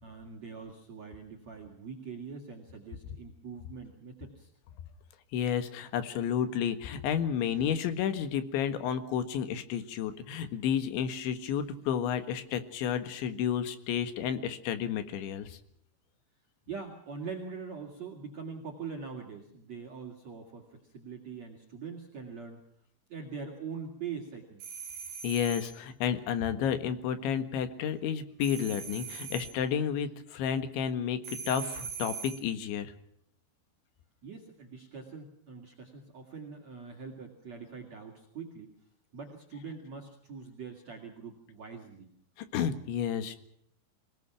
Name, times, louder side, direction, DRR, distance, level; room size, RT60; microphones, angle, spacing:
voice 1, 0.0-4.5 16.7-22.6 23.1-24.6 34.2-38.7 39.1-42.1, right 5 dB, 45° right, 0 dB, 3.2 m, -43 dB
voice 2, 5.3-15.6 25.2-32.9 42.4-43.4, left 8 dB, 80° left, 10 dB, 4.0 m, -31 dB
sound 1, 24.6-25.8 28.4-29.6 31.2-32.5, right 7 dB, 60° right, 3.5 m, -41 dB
26.5 x 18.5 x 6.0 m, 0.71 s
omnidirectional pair, 5.2 m